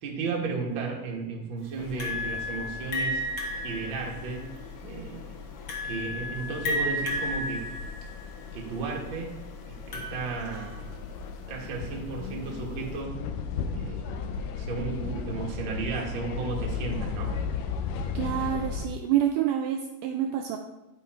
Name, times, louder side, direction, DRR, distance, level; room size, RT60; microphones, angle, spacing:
voice 1, 0.0-3.2 3.6-4.5 4.8-5.3 5.8-7.7 8.5-9.3 9.7-10.8 11.5-13.2 13.7-14.2 14.5-17.4, right 4 dB, 50° right, -1 dB, 1.6 m, -34 dB
sound 1, 1.8-18.9, left 5 dB, 80° left, 2.1 m, -36 dB
sound 2, 2.0-11.3, left 1 dB, 50° left, 1.6 m, -34 dB
voice 2, 18.1-20.6, right 10 dB, 80° right, 4 dB, 1.9 m, -27 dB
10.0 x 5.6 x 4.3 m, 1.0 s
omnidirectional pair, 4.0 m